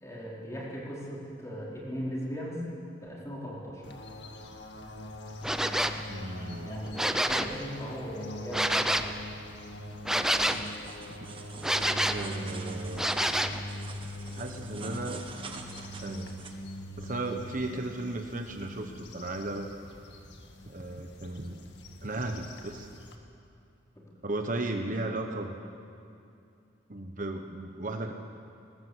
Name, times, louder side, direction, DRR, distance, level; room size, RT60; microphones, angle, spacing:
voice 1, 0.0-2.6 3.0-3.8 6.6-8.7, equal, 15° left, -5 dB, 4.5 m, -38 dB
sound 1, 3.8-23.2, equal, 70° left, 2.0 m, -42 dB
sound 2, 5.4-6.0 6.8-7.6 8.5-9.1 10.0-10.7 11.6-12.3 13.0-13.6, right 1 dB, 5° right, 0.7 m, -27 dB
voice 2, 6.1-6.7 12.1-13.1 14.3-15.2 16.0-16.4 17.0-19.7 20.7-21.6 22.0-22.9 24.2-25.5 26.9-28.1, right 2 dB, 45° right, 4 dB, 1.3 m, -35 dB
sound 3, 10.2-16.5, right 3 dB, 30° right, 1.5 m, -46 dB
20.5 x 18.5 x 8.2 m, 2.5 s
head